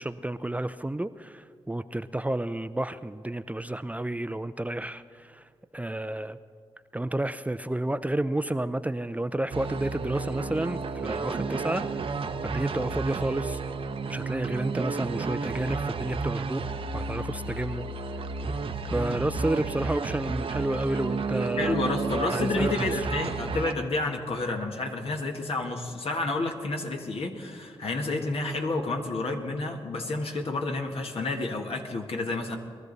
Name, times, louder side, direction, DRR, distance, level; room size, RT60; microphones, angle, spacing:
voice 1, 0.0-6.4 6.9-12.2 12.4-13.6 14.1-16.6 16.9-17.9 18.9-21.8 22.3-22.9, right 1 dB, 15° right, 12 dB, 0.5 m, -31 dB
sound 1, 9.5-23.7, right 4 dB, 60° right, 0.8 m, -32 dB
voice 2, 21.6-32.6, left 2 dB, 65° left, 2 dB, 1.7 m, -30 dB
21.5 x 13.5 x 4.1 m, 2.1 s
supercardioid pair, 45°, 11 cm